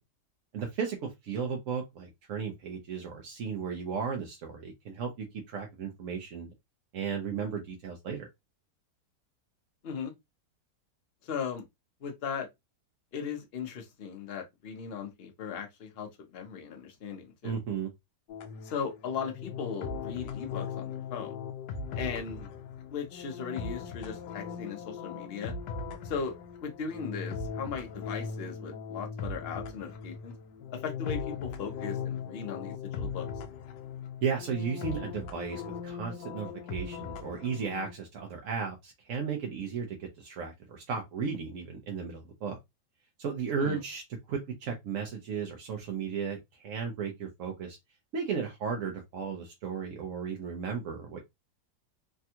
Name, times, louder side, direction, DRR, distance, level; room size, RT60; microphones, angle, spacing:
voice 1, 0.5-6.5 6.9-8.3 17.4-17.9 34.2-42.6 43.2-44.0 44.3-46.4 46.6-47.8 48.1-51.2, right 6 dB, 65° right, 0.8 m, -35 dB
voice 2, 11.2-11.6 12.0-12.5 13.1-17.6 18.6-21.3 22.0-22.5 22.9-25.5 26.0-26.3 26.6-30.3 30.7-33.3 43.6-43.8, left 6 dB, 50° left, 0.8 m, -37 dB
sound 1, 18.3-37.9, left 5 dB, 75° left, 1.1 m, -39 dB
3.5 x 2.2 x 2.8 m
omnidirectional pair, 1.9 m